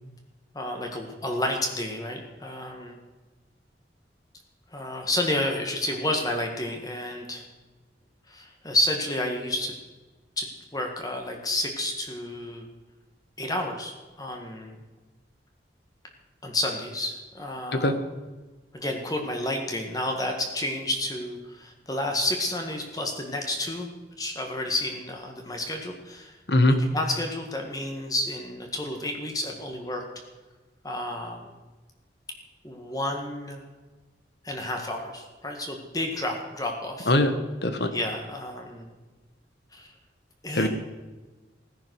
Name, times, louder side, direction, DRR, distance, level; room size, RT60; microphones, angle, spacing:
voice 1, 0.5-3.0 4.7-7.4 8.3-9.7 10.4-12.7 13.4-14.8 16.4-18.0 18.7-23.9 24.2-26.4 26.8-30.0 30.8-31.5 32.6-33.7 34.4-37.1 37.9-38.9 39.7-39.9 40.4-40.7, left 1 dB, 20° left, 3 dB, 1.7 m, -30 dB
voice 2, 17.7-17.9 26.5-26.8 37.1-37.3 37.6-37.9 40.5-40.7, left 1 dB, 65° left, 9 dB, 1.5 m, -21 dB
17.0 x 10.0 x 6.5 m, 1.3 s
head